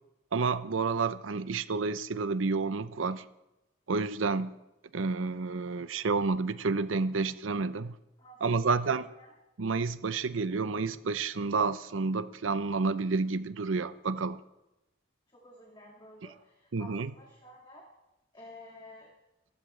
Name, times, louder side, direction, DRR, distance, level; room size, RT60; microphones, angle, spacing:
voice 1, 0.3-3.2 3.9-4.6 4.9-8.0 8.4-9.0 9.6-14.4 16.7-17.1, right 4 dB, 90° right, 0.6 m, -30 dB
voice 2, 8.2-9.3 15.3-17.9 18.3-19.1, left 1 dB, 25° left, 2.1 m, -52 dB
27.0 x 14.0 x 3.3 m
head